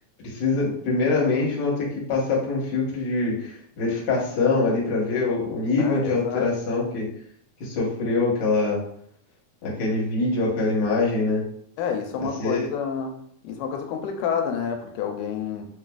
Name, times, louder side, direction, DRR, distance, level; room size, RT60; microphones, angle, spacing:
voice 1, 0.2-7.1 7.6-8.8 9.6-11.4 12.4-12.7, left 3 dB, 55° left, -4 dB, 1.2 m, -24 dB
voice 2, 5.8-6.5 11.8-15.7, left 7 dB, 90° left, 4 dB, 2.1 m, -29 dB
5.8 x 2.4 x 2.3 m, 0.65 s
omnidirectional pair, 3.5 m